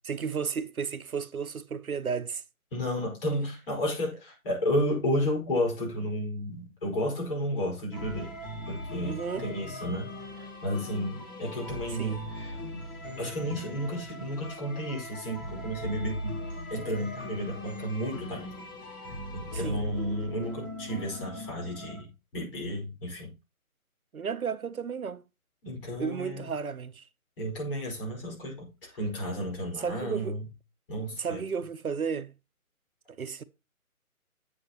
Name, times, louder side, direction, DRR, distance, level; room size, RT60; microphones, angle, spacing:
voice 1, 0.0-2.4 9.0-9.5 11.9-12.2 19.5-19.8 24.1-25.2 26.0-27.1 29.8-30.4 31.1-32.3 33.1-33.4, right 6 dB, 75° right, 0.9 m, -33 dB
voice 2, 2.7-8.3 8.7-12.6 13.2-16.4 16.7-18.5 19.3-23.3 25.6-26.4 27.4-30.4 30.9-31.4, equal, 40° left, 5.1 m, -32 dB
sound 1, 7.9-22.0, left 1 dB, 15° left, 1.2 m, -39 dB
11.0 x 8.2 x 3.0 m
figure-of-eight pair, 150°, 43 cm